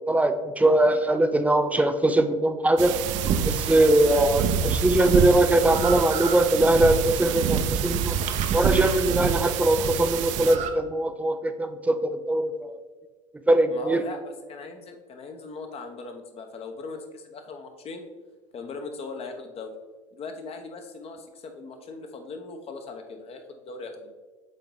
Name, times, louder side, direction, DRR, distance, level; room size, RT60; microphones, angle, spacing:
voice 1, 0.1-3.0 3.4-8.2 8.5-12.8 13.5-14.0, right 1 dB, 10° right, 8 dB, 0.5 m, -21 dB
sound 1, 2.8-10.7, right 6 dB, 40° right, 0.8 m, -27 dB
sound 2, 2.8-10.6, right 14 dB, 65° right, 0.4 m, -32 dB
voice 2, 13.7-18.0 18.5-19.7 20.1-24.1, left 4 dB, 35° left, 5 dB, 1.0 m, -39 dB
7.5 x 3.9 x 3.9 m, 1.3 s
hypercardioid pair, 80°, 17 cm